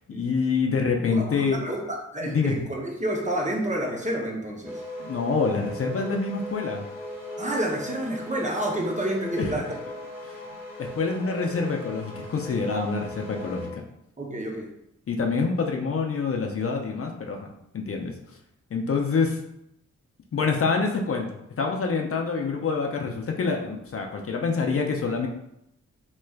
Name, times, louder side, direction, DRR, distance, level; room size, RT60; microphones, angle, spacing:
voice 1, 0.1-1.6 2.2-2.6 5.0-6.9 9.4-9.5 10.2-10.4 10.8-13.8 15.1-17.5 17.7-18.1 18.7-19.4 20.3-25.3, left 4 dB, 50° left, 2 dB, 0.5 m, -26 dB
voice 2, 1.0-4.8 7.4-9.7 12.7-12.9 13.6-13.7 14.2-14.7, right 1 dB, 25° right, 0 dB, 0.7 m, -29 dB
sound 1, 4.6-13.7, left 1 dB, 5° right, 1.0 m, -38 dB
3.1 x 3.0 x 2.3 m, 0.79 s
cardioid pair, 55°, 30 cm